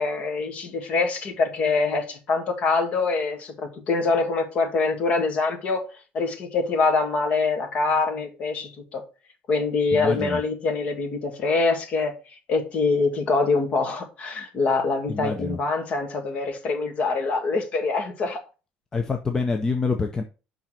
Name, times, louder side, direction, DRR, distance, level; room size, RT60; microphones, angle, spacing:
voice 1, 0.0-5.8 6.1-9.0 9.5-18.4, left 4 dB, 40° left, 1.6 m, -24 dB
voice 2, 9.9-10.4 15.1-15.6 18.9-20.2, left 4 dB, 15° left, 0.5 m, -26 dB
5.8 x 3.9 x 6.0 m
cardioid pair, 170°, 4 cm